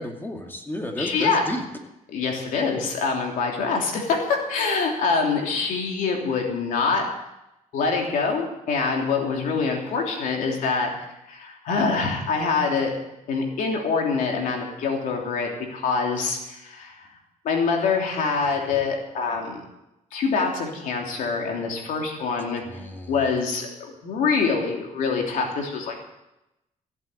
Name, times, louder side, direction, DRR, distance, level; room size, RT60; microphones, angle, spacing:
voice 1, 0.0-1.6 22.6-23.3, left 1 dB, 15° left, 3 dB, 2.4 m, -32 dB
voice 2, 1.0-1.4 2.1-7.0 7.7-10.9 11.3-12.9 13.3-17.1 17.4-19.6 20.1-22.6 23.1-26.0, left 4 dB, 80° left, 1 dB, 3.1 m, -25 dB
15.0 x 8.4 x 8.0 m, 0.92 s
cardioid pair, 110°, 14 cm